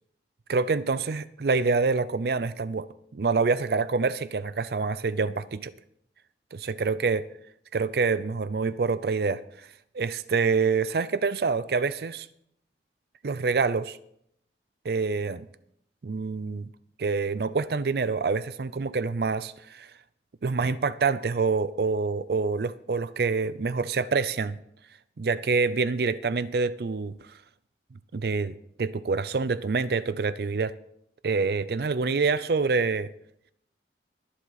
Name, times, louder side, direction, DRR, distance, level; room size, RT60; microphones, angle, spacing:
voice 1, 0.5-5.7 6.5-7.2 7.7-9.7 9.9-12.3 13.2-14.0 14.8-15.5 16.0-16.7 17.0-19.9 20.4-24.6 25.2-27.2 28.1-30.7 31.2-33.1, right 4 dB, 60° right, 0.4 m, -26 dB
21.5 x 7.6 x 4.0 m
head